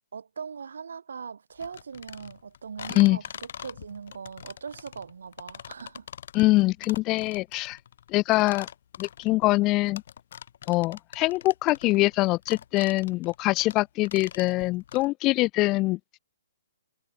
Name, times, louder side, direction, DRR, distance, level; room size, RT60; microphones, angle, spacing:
voice 1, 0.1-6.1, right 6 dB, 85° right, 3.2 m, -40 dB
sound 1, 1.6-15.1, left 9 dB, 55° left, 3.4 m, -44 dB
voice 2, 6.3-7.8 8.1-8.7 9.0-10.0 10.7-16.2, left 20 dB, 20° left, 0.5 m, -24 dB
hypercardioid pair, 160°, 0 cm